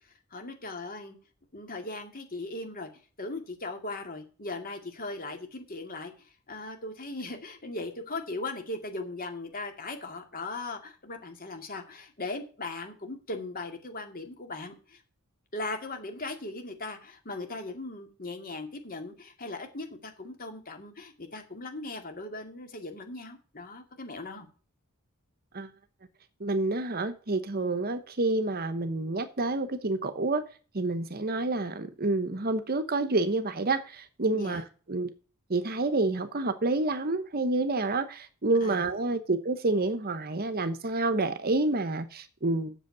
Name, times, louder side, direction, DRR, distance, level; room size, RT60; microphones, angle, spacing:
voice 1, 0.3-1.2 1.5-2.9 3.2-15.0 15.5-24.5 34.3-34.6 38.6-38.8, left 2 dB, 40° left, 2.3 m, -38 dB
voice 2, 26.4-30.4 30.7-35.1 35.5-42.7, right 2 dB, 45° right, 0.9 m, -28 dB
8.2 x 6.9 x 6.6 m
head